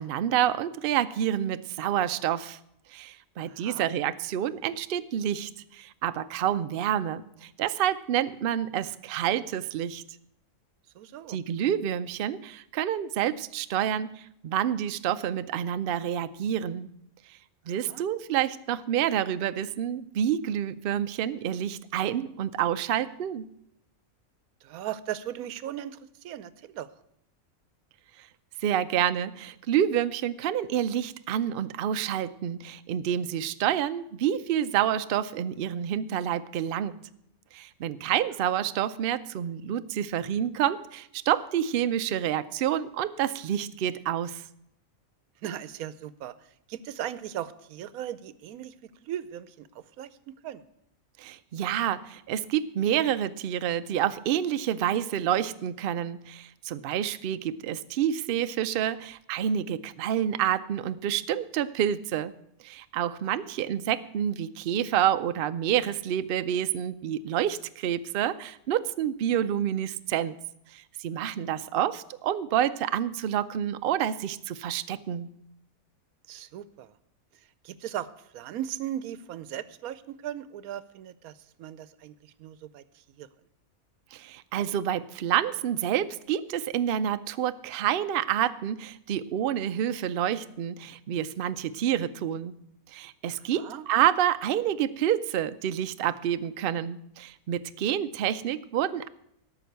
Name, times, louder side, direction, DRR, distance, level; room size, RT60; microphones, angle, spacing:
voice 1, 0.0-2.6 2.9-10.0 11.3-16.9 17.3-17.4 17.7-23.5 28.2-28.3 28.6-37.0 37.5-44.5 51.2-62.3 62.6-70.4 70.7-75.3 84.1-92.5 92.9-99.1, right 10 dB, 65° right, 12 dB, 0.5 m, -28 dB
voice 2, 3.4-3.9 10.9-11.4 17.9-18.0 24.6-26.9 45.4-46.3 46.7-50.6 71.7-71.8 76.3-76.9 77.6-78.1 78.3-83.3 93.6-93.9, right 11 dB, 85° right, 16 dB, 1.1 m, -38 dB
13.0 x 5.9 x 8.0 m, 0.75 s
omnidirectional pair, 1.5 m